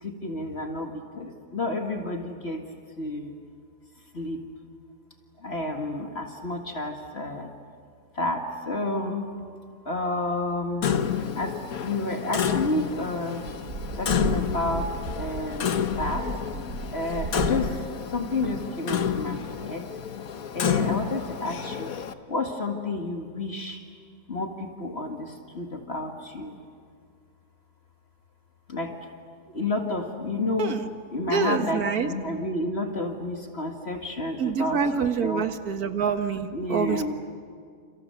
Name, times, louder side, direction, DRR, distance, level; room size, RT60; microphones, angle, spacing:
voice 1, 0.0-2.6 3.0-3.3 4.1-4.4 5.4-7.5 8.2-9.3 9.9-10.9 11.4-13.4 14.0-16.3 16.9-17.8 18.1-19.8 20.5-21.9 22.3-23.8 24.3-26.6 28.7-28.9 29.5-30.8 31.1-35.5 36.5-37.1, left 2 dB, 45° left, 3 dB, 2.2 m, -30 dB
Clock, 10.8-22.1, left 8 dB, 75° left, 1.5 m, -30 dB
sound 1, 13.5-18.9, right 4 dB, 60° right, 1.7 m, -35 dB
voice 2, 31.3-32.1 34.4-37.1, right 6 dB, 90° right, 8 dB, 1.9 m, -26 dB
30.0 x 28.0 x 6.9 m, 2.1 s
omnidirectional pair, 1.5 m